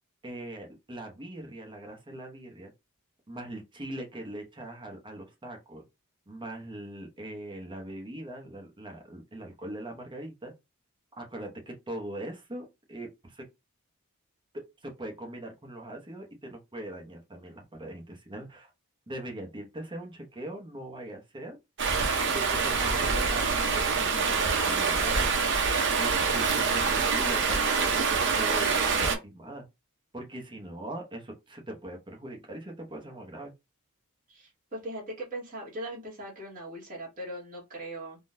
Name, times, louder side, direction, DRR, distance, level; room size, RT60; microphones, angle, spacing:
voice 1, 0.2-2.7 3.3-5.8 6.3-10.5 11.2-13.4 14.5-18.7 19.1-21.6 22.3-25.4 26.0-29.6 30.1-33.5, right 1 dB, 20° right, 0.9 m, -41 dB
Stream, 21.8-29.2, right 5 dB, 55° right, 0.7 m, -26 dB
voice 2, 34.3-38.2, right 1 dB, 40° right, 1.5 m, -39 dB
3.6 x 2.2 x 2.6 m
head